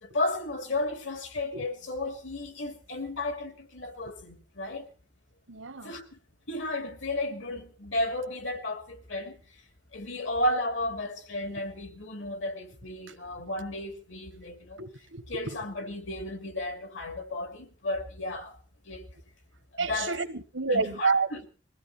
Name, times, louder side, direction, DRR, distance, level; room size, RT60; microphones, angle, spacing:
voice 1, 0.0-4.9 5.8-6.2 6.5-9.4 9.9-14.8 15.3-18.6 18.9-19.0 19.8-20.2 20.7-21.5, left 1 dB, 75° left, 2.7 m, -33 dB
voice 2, 5.5-5.9 14.8-15.2 19.8-21.3, right 4 dB, 85° right, 1.4 m, -29 dB
21.5 x 15.0 x 4.1 m
head